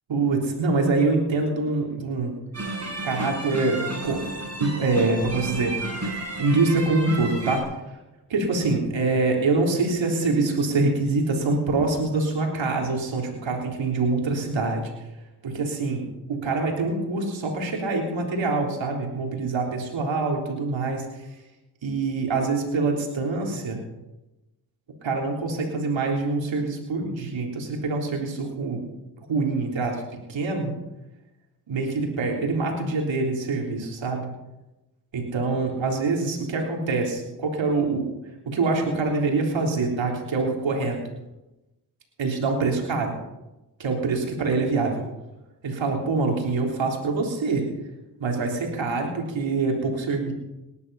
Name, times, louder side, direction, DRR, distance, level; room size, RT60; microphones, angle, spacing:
voice 1, 0.1-2.3 3.0-4.2 4.6-5.7 6.4-7.6 8.3-14.9 15.4-21.3 21.8-23.8 25.0-28.8 29.2-30.0 30.3-30.7 31.7-34.3 35.1-38.1 38.5-41.0 42.2-43.1 43.8-45.0 45.6-47.6 48.2-50.3, right 3 dB, 75° right, 1 dB, 3.7 m, -25 dB
sound 1, 2.5-7.6, right 2 dB, 35° right, 6.5 m, -32 dB
18.5 x 11.0 x 5.6 m, 0.99 s
supercardioid pair, 45°, 45 cm